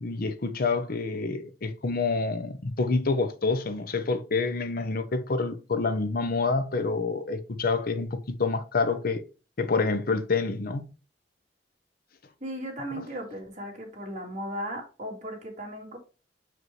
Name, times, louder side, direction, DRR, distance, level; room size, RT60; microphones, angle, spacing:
voice 1, 0.0-9.2 9.6-10.8, left 4 dB, 55° left, 0.7 m, -27 dB
voice 2, 12.4-16.0, equal, 45° right, 2.1 m, -36 dB
6.1 x 5.0 x 3.1 m
head